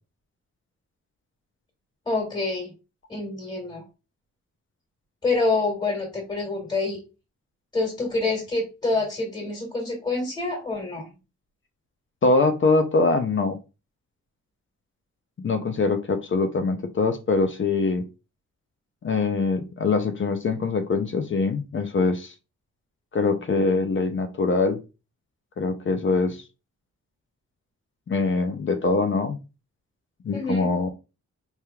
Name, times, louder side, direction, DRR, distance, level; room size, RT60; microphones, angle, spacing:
voice 1, 2.1-2.7 3.1-3.8 5.2-7.0 7.7-11.1 30.3-30.7, left 3 dB, 15° left, -1 dB, 1.8 m, -27 dB
voice 2, 12.2-13.6 15.4-18.0 19.0-22.3 23.1-24.8 25.6-26.4 28.1-29.4 30.2-30.9, left 3 dB, 40° left, 7 dB, 0.5 m, -23 dB
4.4 x 3.4 x 2.3 m, 0.29 s
wide cardioid pair, 120°, 29 cm